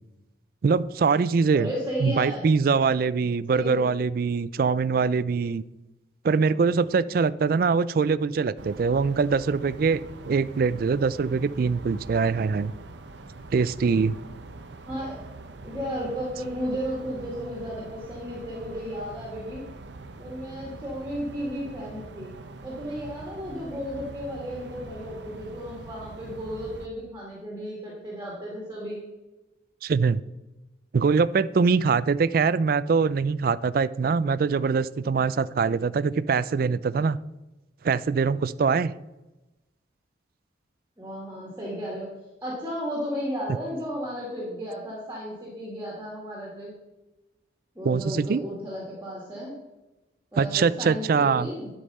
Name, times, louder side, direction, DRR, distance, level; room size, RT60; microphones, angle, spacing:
voice 1, 0.6-1.7 2.0-5.6 6.2-12.7 13.5-14.2 29.8-30.2 30.9-37.2 37.8-38.9 47.8-48.4 50.4-51.5, right 5 dB, 50° right, 18 dB, 0.3 m, -23 dB
voice 2, 1.5-2.5 3.5-4.0 14.9-15.2 15.6-19.6 20.2-22.3 22.6-29.0 41.0-42.1 42.4-46.7 47.8-49.6 50.3-51.7, equal, 15° right, -4 dB, 2.0 m, -34 dB
sound 1, 8.6-26.9, right 2 dB, 70° right, 0.7 m, -43 dB
11.5 x 5.4 x 5.4 m, 1.0 s
head